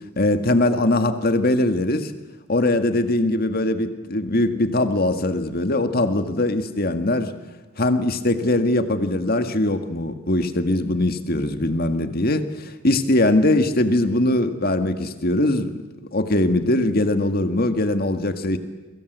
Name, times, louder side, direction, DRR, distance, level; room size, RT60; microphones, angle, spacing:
voice 1, 0.2-2.1 2.5-7.3 7.8-12.4 12.8-15.8 16.1-18.6, left 1 dB, 45° left, 8 dB, 1.9 m, -21 dB
29.5 x 23.5 x 8.2 m, 1.3 s
head